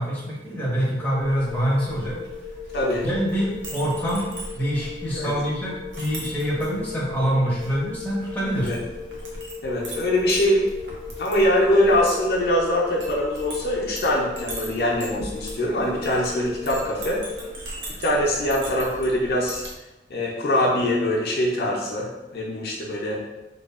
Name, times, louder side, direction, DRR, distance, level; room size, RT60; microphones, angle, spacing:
voice 1, 0.0-2.2 3.0-4.3 4.5-8.7, equal, 10° left, -6 dB, 0.6 m, -25 dB
sound 1, 1.0-17.5, left 6 dB, 35° right, 0.4 m, -39 dB
Chink clink, 1.2-19.7, right 1 dB, 85° right, 0.6 m, -39 dB
voice 2, 2.7-3.0 5.2-5.3 8.6-8.8 9.6-10.6 11.2-17.2 18.0-19.6 20.1-23.2, left 1 dB, 60° left, -3 dB, 0.4 m, -23 dB
2.6 x 2.2 x 2.3 m, 1.0 s
head